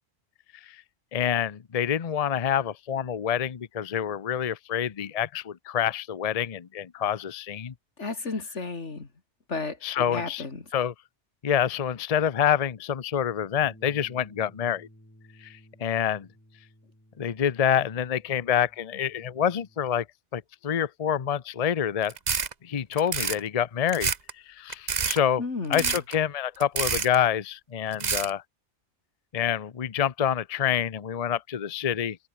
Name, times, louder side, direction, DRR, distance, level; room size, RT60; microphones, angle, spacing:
voice 1, 1.1-7.7 9.8-10.4 10.7-10.9 11.4-14.9 15.4-16.3 17.2-20.0 20.3-22.1 22.6-24.1 24.5-25.4 25.7-28.4 29.3-32.2, left 9 dB, 40° left, 0.7 m, -27 dB
voice 2, 8.0-9.1 9.5-10.6 25.4-26.0, left 4 dB, 90° left, 2.9 m, -33 dB
Bass guitar, 13.6-19.9, equal, 10° left, 6.9 m, -55 dB
sound 1, 22.1-22.5 22.9-23.4 23.9-24.3 24.7-25.2 25.7-26.1 26.6-27.2 27.9-28.3, right 6 dB, 40° right, 1.0 m, -27 dB
open air
omnidirectional pair, 1.2 m